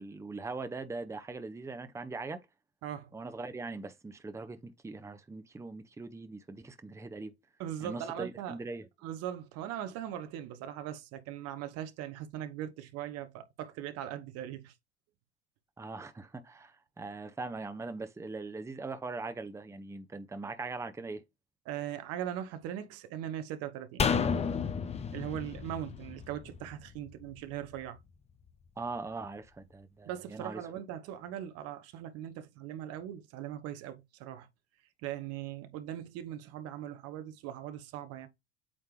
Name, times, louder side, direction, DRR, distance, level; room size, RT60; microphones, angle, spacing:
voice 1, 0.0-2.5 3.1-7.3 7.8-8.9 15.8-21.2 28.8-30.6, right 3 dB, 10° right, 0.9 m, -41 dB
voice 2, 7.6-8.6 9.0-14.7 21.7-24.5 25.1-28.0 30.0-34.5 35.0-38.3, right 11 dB, 50° right, 1.1 m, -40 dB
sound 1, 24.0-27.3 27.6-27.7, left 6 dB, 20° left, 0.7 m, -32 dB
8.5 x 3.4 x 3.3 m
figure-of-eight pair, 65°, 32 cm